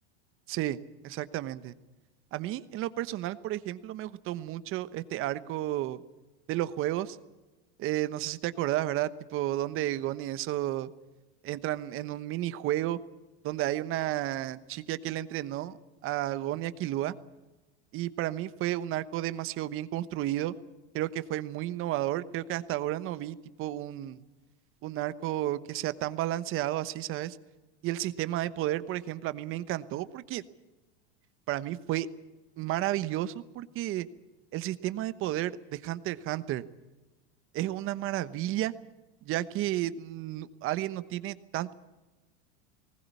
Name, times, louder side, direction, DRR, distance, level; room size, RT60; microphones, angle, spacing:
voice 1, 0.5-0.8 1.0-1.7 2.3-6.0 6.5-7.2 7.8-10.9 11.4-13.0 13.4-15.8 16.0-17.1 17.9-20.5 20.9-24.2 24.8-27.4 27.8-30.4 31.5-32.1 32.6-34.1 34.5-36.7 37.5-38.7 39.2-41.7, right 14 dB, 40° right, 14 dB, 1.1 m, -32 dB
19.5 x 19.0 x 8.4 m, 1.1 s
supercardioid pair, 135°, 33 cm